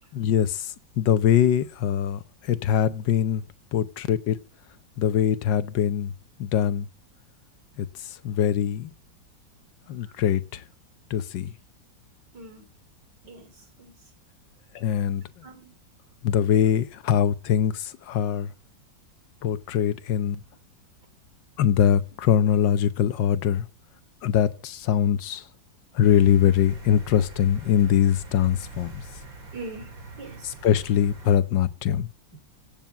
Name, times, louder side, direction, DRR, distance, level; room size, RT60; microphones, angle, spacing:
voice 1, 0.1-2.2 2.5-3.4 3.7-4.4 5.0-6.1 6.4-6.9 7.8-7.9 8.2-8.9 9.9-10.6 11.1-11.5 14.7-15.2 16.2-18.5 19.4-20.4 21.6-23.6 24.2-25.4 25.9-29.0 30.6-32.1, left 9 dB, 75° left, 1.5 m, -22 dB
voice 2, 12.3-12.7 13.2-14.1 15.4-15.7 29.5-30.6 32.3-32.4, right 3 dB, 65° right, 3.5 m, -43 dB
sound 1, 26.0-31.4, right 2 dB, 80° right, 4.0 m, -43 dB
17.0 x 7.2 x 7.3 m
omnidirectional pair, 2.0 m